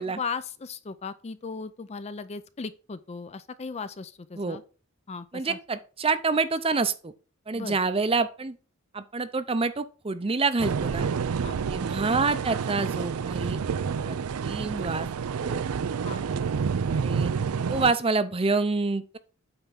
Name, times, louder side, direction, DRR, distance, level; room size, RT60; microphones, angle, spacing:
voice 1, 0.2-4.6 5.1-5.6 7.5-7.8 11.4-11.6 16.0-16.2, left 5 dB, 30° left, 0.4 m, -37 dB
voice 2, 5.3-7.1 7.5-8.6 8.9-11.1 11.7-13.6 14.0-14.2 14.4-15.1 15.4-15.6 16.9-17.3 17.7-19.2, right 4 dB, 25° right, 0.6 m, -27 dB
sound 1, 10.6-17.9, right 6 dB, 85° right, 0.4 m, -29 dB
8.8 x 3.6 x 5.7 m
head